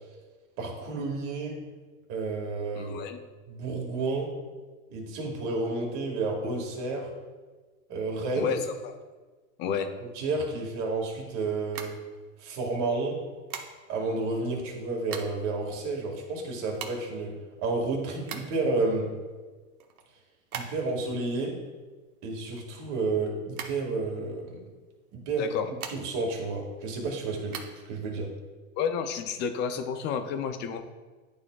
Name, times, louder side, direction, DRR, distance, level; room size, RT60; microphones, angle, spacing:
voice 1, 0.6-1.6 2.1-3.0 3.5-4.3 4.9-7.1 7.9-8.5 10.2-11.9 12.4-13.2 13.9-19.1 20.5-21.6 22.2-24.6 25.1-25.5 25.9-27.6 27.9-28.3, right 3 dB, 40° right, 0 dB, 1.9 m, -31 dB
voice 2, 2.8-3.2 8.4-8.9 9.6-9.9 25.4-25.7 28.8-30.8, left 7 dB, 25° left, 8 dB, 0.4 m, -31 dB
sound 1, 11.6-12.6 13.5-14.1 14.7-15.5 15.8-15.9 16.1-18.8 19.2-21.1 21.3-23.2 23.5-24.5 25.3-26.3 26.7-27.7, right 7 dB, 85° right, 1.1 m, -41 dB
11.0 x 4.2 x 2.3 m, 1.3 s
hypercardioid pair, 120°, 43 cm